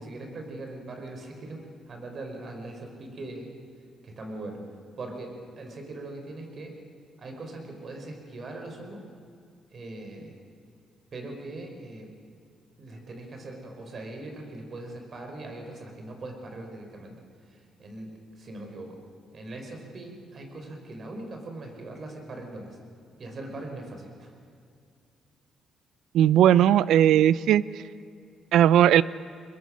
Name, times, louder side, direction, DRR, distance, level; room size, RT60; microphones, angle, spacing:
voice 1, 0.0-3.5 4.0-4.7 5.0-6.7 7.2-9.0 9.7-10.4 11.1-12.1 12.8-19.0 19.3-22.8 23.2-24.3, right 2 dB, 45° right, 3 dB, 4.6 m, -40 dB
voice 2, 26.1-27.6 28.5-29.0, right 11 dB, 80° right, 19 dB, 0.5 m, -18 dB
22.5 x 21.5 x 6.4 m, 2.3 s
cardioid pair, 90°, 0 cm